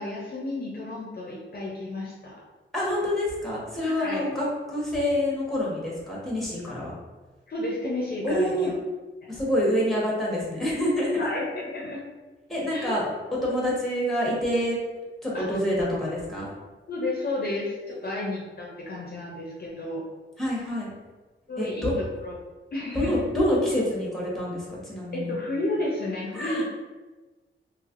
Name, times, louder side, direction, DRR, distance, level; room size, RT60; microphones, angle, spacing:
voice 1, 0.0-2.4 3.8-4.2 7.5-8.7 9.2-9.3 11.2-12.0 12.7-13.0 15.3-15.5 16.9-20.0 21.5-22.3 22.7-23.1 25.1-26.6, left 2 dB, 45° left, -3 dB, 0.5 m, -32 dB
voice 2, 2.7-6.9 8.2-8.7 9.3-11.3 12.5-13.0 13.4-14.8 15.2-16.5 17.9-18.1 20.4-20.9 21.6-21.9 22.9-25.3 26.3-26.6, equal, ahead, -5 dB, 1.0 m, -27 dB
3.1 x 2.8 x 2.4 m, 1.2 s
wide cardioid pair, 115°, 21 cm